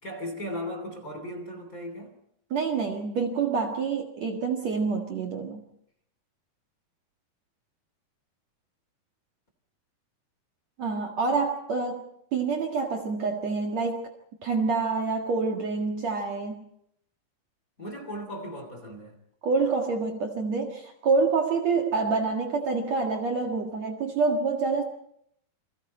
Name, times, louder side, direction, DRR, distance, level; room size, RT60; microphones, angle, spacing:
voice 1, 0.0-2.1 17.8-19.2, equal, 25° left, 3.1 m, -37 dB
voice 2, 2.5-5.6 10.8-14.1 14.4-16.6 19.4-24.8, right 4 dB, 50° right, 2.6 m, -27 dB
29.5 x 23.5 x 4.3 m
omnidirectional pair, 4.5 m